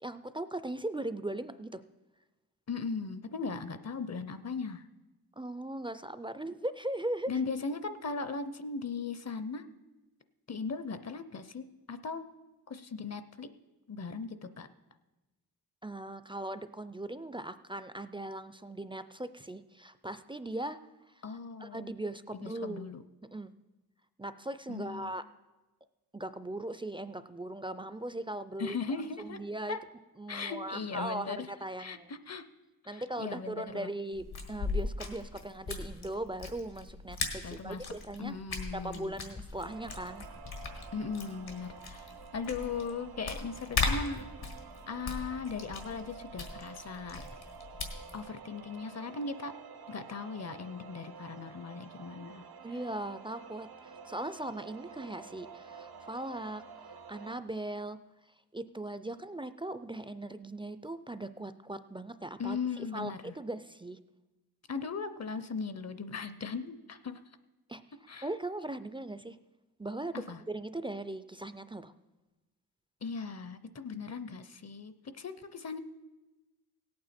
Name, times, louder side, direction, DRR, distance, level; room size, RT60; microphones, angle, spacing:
voice 1, 0.0-1.8 5.4-7.3 15.8-20.8 21.3-22.9 23.3-23.5 24.2-25.2 26.1-28.8 29.2-29.8 30.2-32.1 32.9-38.4 38.7-40.2 52.6-56.6 57.1-58.0 58.5-64.0 67.7-67.8 68.2-69.4 69.8-71.9, right 1 dB, 15° right, 12 dB, 0.3 m, -39 dB
voice 2, 2.7-4.8 7.3-9.7 10.5-12.3 12.7-13.5 13.9-14.7 21.2-21.9 22.3-23.0 24.7-25.1 28.6-29.4 29.7-29.8 30.3-31.5 31.8-32.4 32.8-33.9 37.4-37.9 38.2-39.1 40.9-42.1 42.3-44.3 44.9-47.2 48.1-49.5 49.9-52.4 62.4-63.3 64.7-67.2 68.1-68.3 70.1-70.4 73.0-75.8, left 4 dB, 45° left, 12 dB, 0.6 m, -38 dB
sound 1, 34.1-48.2, left 4 dB, 85° left, 1.7 m, -39 dB
sound 2, 39.6-57.4, right 5 dB, 85° right, 0.8 m, -50 dB
17.0 x 8.6 x 4.3 m, 1.1 s
wide cardioid pair, 120°, 37 cm